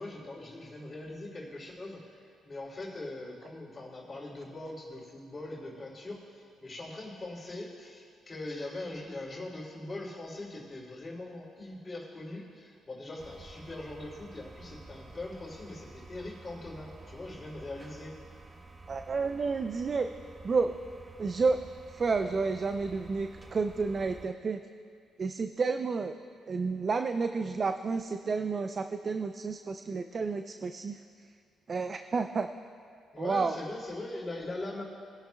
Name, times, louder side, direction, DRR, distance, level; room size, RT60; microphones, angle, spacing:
voice 1, 0.0-18.1 33.1-34.8, left 2 dB, 25° left, -10 dB, 2.9 m, -41 dB
sound 1, 13.2-24.3, right 2 dB, 25° right, 0.9 m, -51 dB
voice 2, 18.9-20.1 20.4-20.7 21.2-21.6 21.9-24.6 25.2-26.1 26.5-31.0 31.7-32.5 33.2-33.6, right 4 dB, 40° right, 7 dB, 0.4 m, -30 dB
24.5 x 10.5 x 2.3 m, 2.2 s
cardioid pair, 90°, 0 cm